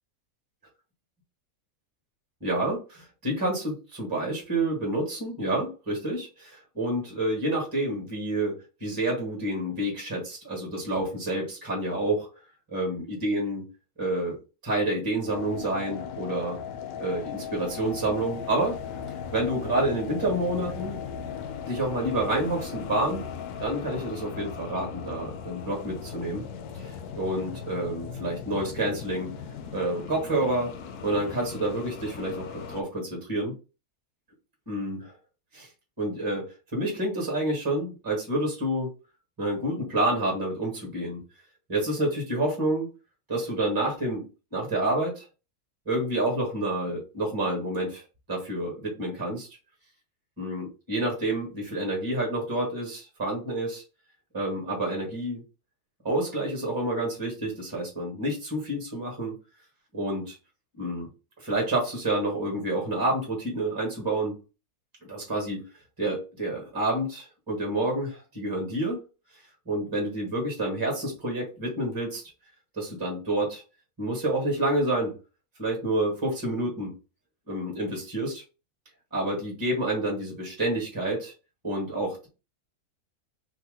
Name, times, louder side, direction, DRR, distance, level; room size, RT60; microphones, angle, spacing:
voice 1, 2.4-12.3 12.7-13.6 14.0-14.4 14.6-16.6 17.0-18.8 19.3-21.0 21.6-23.2 23.6-26.4 26.7-29.3 29.7-30.7 31.0-33.5 34.7-35.1 35.5-35.7 36.0-38.9 39.4-41.2 41.7-42.9 43.3-44.2 44.5-45.3 45.8-48.0 48.3-49.5 50.4-53.8 54.3-55.4 56.0-59.3 59.9-60.4 60.8-61.1 61.4-64.4 65.1-65.6 66.0-69.0 69.6-72.2 72.8-73.6 74.0-75.1 75.6-76.9 77.5-78.4 79.1-81.3 81.6-82.3, right 1 dB, 15° right, 0 dB, 1.3 m, -28 dB
sound 1, 15.3-32.8, left 7 dB, 80° left, 1.1 m, -38 dB
2.8 x 2.8 x 3.7 m, 0.31 s
omnidirectional pair, 1.6 m